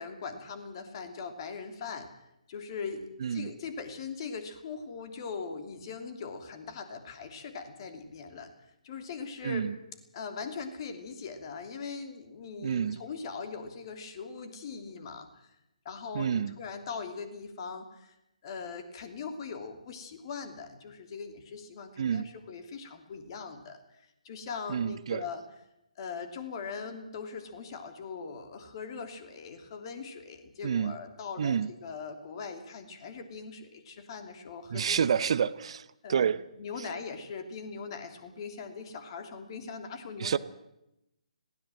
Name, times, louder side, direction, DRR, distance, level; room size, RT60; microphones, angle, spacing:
voice 1, 0.0-2.1 2.5-8.5 8.8-9.7 10.1-15.5 15.8-18.2 18.4-23.8 24.2-25.4 26.0-35.1 36.0-40.4, left 5 dB, 40° left, 2.9 m, -40 dB
voice 2, 9.4-9.8 12.6-13.0 16.1-16.5 22.0-22.3 24.7-25.2 30.6-30.9 31.4-31.7 34.7-36.4 40.2-40.4, right 7 dB, 50° right, 0.8 m, -29 dB
20.5 x 16.5 x 7.7 m
figure-of-eight pair, 140°, 4 cm